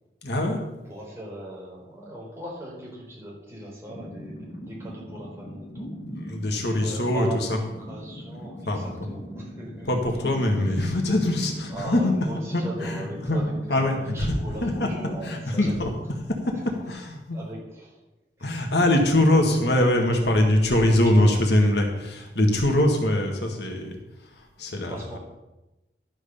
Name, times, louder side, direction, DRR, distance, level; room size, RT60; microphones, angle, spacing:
voice 1, 0.2-0.6 6.2-7.5 8.7-8.8 9.9-12.1 12.5-13.4 13.7-14.3 14.6-14.9 15.2-15.9 16.8-17.4 18.4-24.0 24.6-25.2, left 1 dB, 70° left, 2 dB, 1.8 m, -23 dB
voice 2, 0.8-6.0 6.2-6.3 6.6-10.2 10.6-11.0 11.7-16.0 17.3-18.0 18.4-18.6 19.3-19.7 20.5-21.3 24.9-25.2, right 1 dB, 15° right, -4 dB, 3.9 m, -39 dB
sound 1, 3.9-16.5, equal, 55° left, 2.2 m, -40 dB
12.0 x 6.4 x 6.9 m, 0.98 s
head